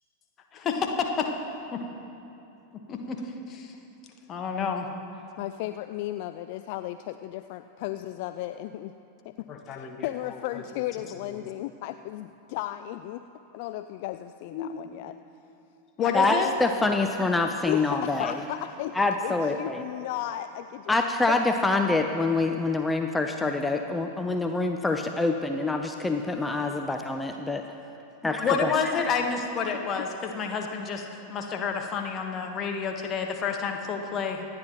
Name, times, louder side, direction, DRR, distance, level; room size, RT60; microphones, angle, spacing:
voice 1, 0.5-1.3 2.9-3.2 3.5-3.7 4.3-4.9 9.5-10.4 11.3-11.4 14.5-14.7 16.0-16.5 28.4-34.5, left 6 dB, 30° left, 3 dB, 1.3 m, -29 dB
voice 2, 5.4-8.9 9.2-13.3 13.5-15.2 17.7-18.9 19.2-20.9 21.3-21.4, left 14 dB, 50° left, 10 dB, 0.3 m, -35 dB
voice 3, 16.1-18.3 18.9-19.8 20.9-27.6 28.2-29.1, left 3 dB, 10° left, 5 dB, 0.6 m, -26 dB
26.0 x 9.5 x 3.0 m, 2.9 s
figure-of-eight pair, 90°, 0 cm